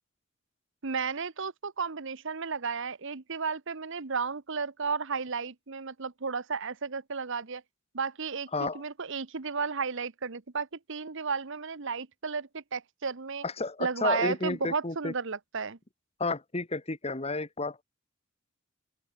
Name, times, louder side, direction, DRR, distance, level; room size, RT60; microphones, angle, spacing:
voice 1, 0.8-7.6 7.9-13.4 13.8-15.8, right 5 dB, 60° right, 1.1 m, -33 dB
voice 2, 8.5-8.8 13.4-15.1 16.2-17.8, left 3 dB, 30° left, 1.8 m, -31 dB
open air
head